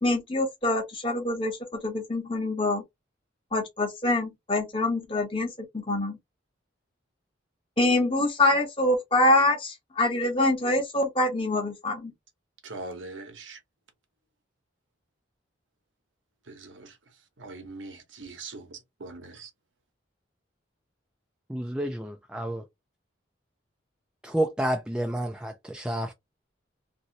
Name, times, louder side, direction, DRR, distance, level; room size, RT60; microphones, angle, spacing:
voice 1, 0.0-2.8 3.5-6.2 7.8-12.1, left 2 dB, 30° left, 0.9 m, -25 dB
voice 2, 12.6-13.6 16.5-16.9 17.4-19.5, right 2 dB, 85° right, 1.0 m, -41 dB
voice 3, 21.5-22.6 24.3-26.1, right 1 dB, 5° right, 0.4 m, -29 dB
3.0 x 2.7 x 2.7 m
head